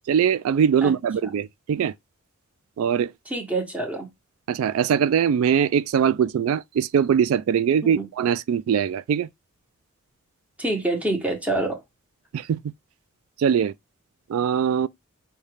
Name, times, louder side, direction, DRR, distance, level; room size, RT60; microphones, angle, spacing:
voice 1, 0.1-1.9 2.8-3.1 4.5-9.3 12.3-12.6 13.4-13.7 14.3-14.9, right 8 dB, 80° right, 0.3 m, -22 dB
voice 2, 3.3-4.1 7.8-8.1 10.6-11.8, right 2 dB, 5° right, 1.0 m, -26 dB
5.4 x 2.3 x 3.2 m
head